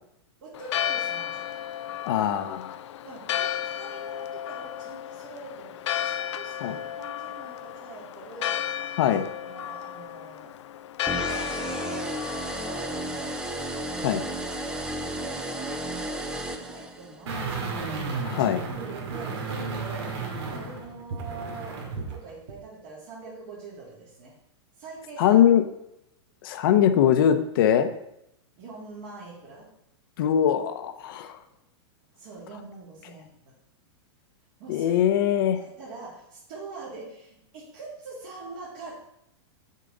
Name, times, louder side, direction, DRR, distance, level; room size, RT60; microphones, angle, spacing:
voice 1, 0.4-1.5 3.0-8.7 9.4-10.5 11.2-14.1 14.6-18.3 18.8-20.2 20.5-24.3 24.8-25.4 28.6-29.7 32.2-33.5 34.6-35.0 35.5-39.0, right 3 dB, 45° right, -6 dB, 2.2 m, -44 dB
Church bell, 0.5-14.6, left 10 dB, 80° left, 0.4 m, -34 dB
voice 2, 2.0-2.8 6.6-6.8 9.0-9.2 14.0-14.2 18.2-18.6 25.2-25.6 26.4-27.9 30.2-31.4 34.7-35.6, left 10 dB, 50° left, 9 dB, 0.8 m, -21 dB
sound 1, 11.1-17.2, right 1 dB, 5° right, 0.5 m, -33 dB
sound 2, 17.3-22.2 22.5-22.6, right 4 dB, 70° right, 2.3 m, -33 dB
7.6 x 6.6 x 3.9 m, 0.79 s
supercardioid pair, 165°, 15 cm